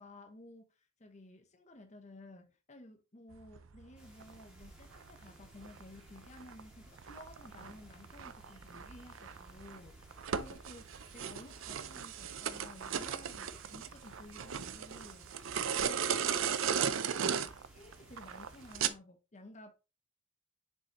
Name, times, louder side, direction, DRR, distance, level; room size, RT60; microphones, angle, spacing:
voice 1, 0.0-10.0 10.4-15.3 15.8-17.1 17.7-19.7, left 1 dB, 35° left, 1.0 m, -54 dB
sound 1, 3.3-18.9, right 7 dB, 85° right, 0.5 m, -37 dB
sound 2, 3.9-18.9, equal, 5° right, 2.1 m, -59 dB
6.9 x 5.0 x 3.0 m
head